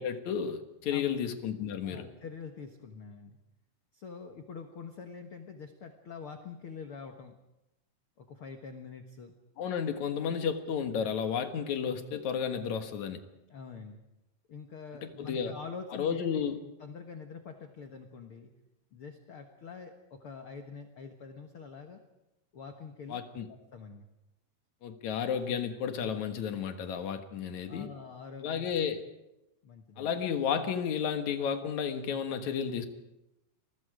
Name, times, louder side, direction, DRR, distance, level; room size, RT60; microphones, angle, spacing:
voice 1, 0.0-2.1 9.6-13.2 14.9-15.5 15.9-16.6 23.1-23.5 24.8-27.9 28.4-29.0 30.0-32.9, left 7 dB, 55° left, 7 dB, 2.4 m, -32 dB
voice 2, 1.8-3.4 3.9-7.4 8.2-9.3 13.5-14.0 14.5-16.5 16.8-18.5 18.9-22.0 22.5-23.2 23.5-24.1 27.7-28.7 29.6-30.1, left 5 dB, 75° left, 5 dB, 1.2 m, -45 dB
29.0 x 21.5 x 5.0 m, 0.91 s
omnidirectional pair, 4.7 m